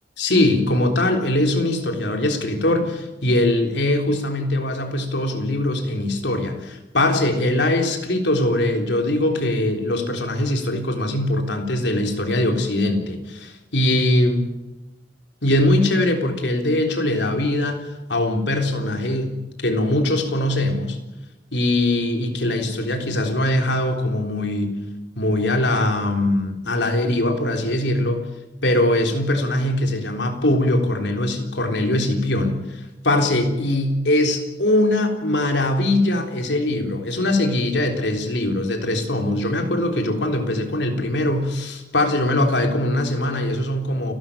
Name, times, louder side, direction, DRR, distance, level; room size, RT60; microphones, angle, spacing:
voice 1, 0.2-14.5 15.4-19.3 19.6-21.0 21.5-24.8 25.2-28.2 28.6-44.1, left 1 dB, 70° left, 4 dB, 3.8 m, -21 dB
29.5 x 12.5 x 8.8 m, 1.0 s
head